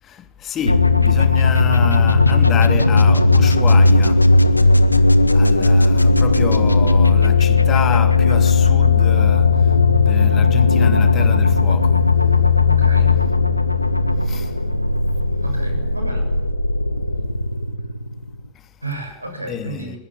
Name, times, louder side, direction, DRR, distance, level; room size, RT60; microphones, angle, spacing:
voice 1, 0.0-4.6 4.9-12.2 14.2-14.6 17.0-17.1 18.5-18.8 19.5-20.0, left 8 dB, 30° left, 2.9 m, -29 dB
sound 1, 0.7-18.4, left 4 dB, 85° left, 1.5 m, -15 dB
voice 2, 12.6-13.2 15.4-16.3 18.8-20.0, right 1 dB, 85° right, 7.1 m, -31 dB
22.5 x 21.5 x 9.9 m
figure-of-eight pair, 90°, 0 cm